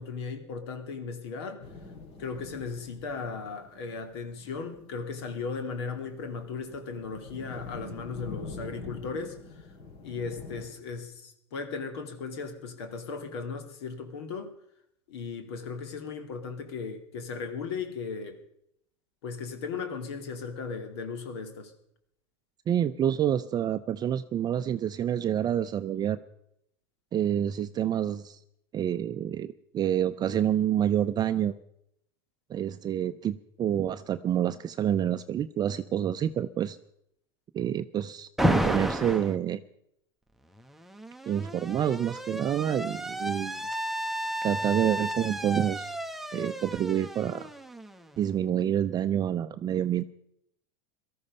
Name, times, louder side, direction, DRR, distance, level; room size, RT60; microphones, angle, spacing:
voice 1, 0.0-1.7 2.2-9.7 10.0-14.5 15.1-18.4 19.2-21.7, left 5 dB, 70° left, 7 dB, 2.5 m, -37 dB
sound 1, 1.6-10.6, left 3 dB, 50° left, 5.3 m, -46 dB
voice 2, 22.7-26.2 27.1-28.4 28.7-31.5 32.5-36.8 37.5-39.6 41.3-43.6 44.4-45.9 46.3-47.5 48.2-50.0, right 10 dB, 30° right, 10 dB, 0.5 m, -28 dB
Alarm, 38.4-39.4 40.6-48.3, equal, ahead, 0.8 m, -32 dB
18.0 x 13.5 x 5.4 m, 0.75 s
hypercardioid pair, 100°, 14 cm